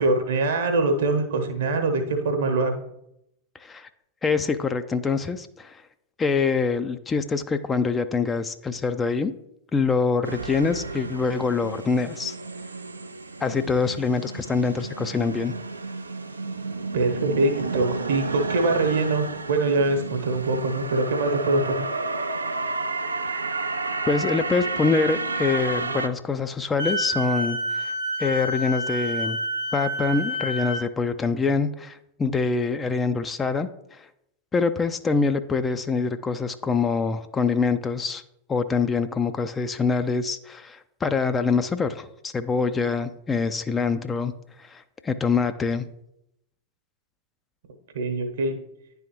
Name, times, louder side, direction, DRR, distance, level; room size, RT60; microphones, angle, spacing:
voice 1, 0.0-2.8 16.9-21.9 47.9-48.6, right 2 dB, 60° right, 5 dB, 1.0 m, -23 dB
voice 2, 4.2-5.8 6.2-9.3 9.7-12.4 13.4-15.5 24.1-27.9 28.2-29.4 29.7-34.1 34.5-38.2 38.5-44.3 44.6-45.8, left 4 dB, 15° left, 10 dB, 0.3 m, -25 dB
sound 1, 10.2-26.1, right 3 dB, 80° right, 0.4 m, -31 dB
Wind instrument woodwind instrument, 26.8-30.8, right 1 dB, 75° left, 1.4 m, -28 dB
10.5 x 3.5 x 3.0 m, 0.80 s
figure-of-eight pair, 90°, 0 cm